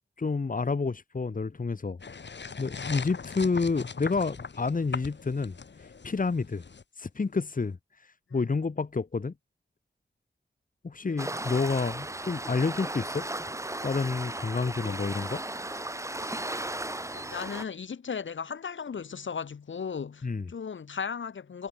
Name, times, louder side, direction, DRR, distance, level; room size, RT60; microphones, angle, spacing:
voice 1, 0.2-2.0 2.6-5.6 6.0-6.6 7.0-7.8 8.3-9.3 10.8-13.3 13.8-15.4 20.2-20.5, left 4 dB, 45° left, 2.2 m, -29 dB
sound 1, 2.0-6.8, left 5 dB, 70° left, 5.9 m, -40 dB
Waves surf, 11.2-17.6, right 1 dB, 15° right, 1.7 m, -36 dB
voice 2, 17.1-21.7, left 6 dB, 85° left, 3.6 m, -36 dB
wide cardioid pair, 90°, 19 cm